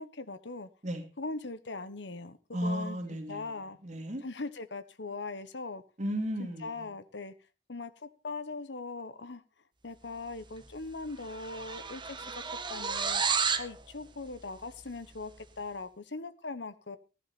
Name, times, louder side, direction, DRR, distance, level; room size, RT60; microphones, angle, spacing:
voice 1, 0.0-0.7 1.2-3.0 3.3-3.8 4.2-5.8 6.4-7.3 7.7-9.4 9.8-13.2 13.6-17.0, left 3 dB, 75° left, 12 dB, 1.2 m, -40 dB
voice 2, 2.5-4.2 6.0-6.9, equal, 45° right, 5 dB, 2.4 m, -35 dB
sound 1, 10.5-10.8 11.0-13.7, right 5 dB, 25° right, 1.3 m, -32 dB
16.0 x 11.0 x 4.2 m, 0.32 s
head